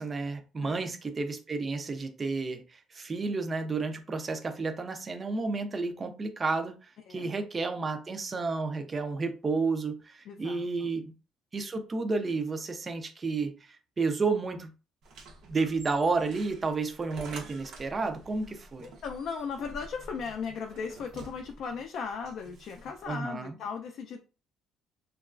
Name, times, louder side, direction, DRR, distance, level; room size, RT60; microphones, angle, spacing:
voice 1, 0.0-6.7 7.1-11.1 11.5-14.7 15.4-18.9 23.1-23.6, right 4 dB, 25° right, 0.4 m, -31 dB
voice 2, 0.6-1.0 7.1-7.3 10.3-10.9 18.8-24.2, left 5 dB, 55° left, 0.3 m, -37 dB
sound 1, 15.0-23.1, right 2 dB, 60° right, 0.6 m, -49 dB
2.9 x 2.3 x 2.4 m
cardioid pair, 135°, 0 cm